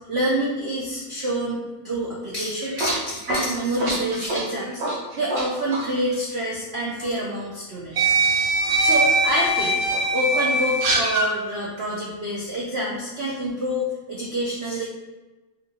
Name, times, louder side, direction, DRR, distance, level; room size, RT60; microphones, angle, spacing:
voice 1, 0.1-4.8 5.1-8.1 8.6-9.8 10.1-14.9, equal, 90° right, -5 dB, 0.5 m, -27 dB
sound 1, 2.4-5.4 5.7-5.9 7.0-7.1 7.9-11.3, right 2 dB, 65° right, 1.8 m, -22 dB
3.5 x 2.9 x 3.8 m, 1.2 s
omnidirectional pair, 2.2 m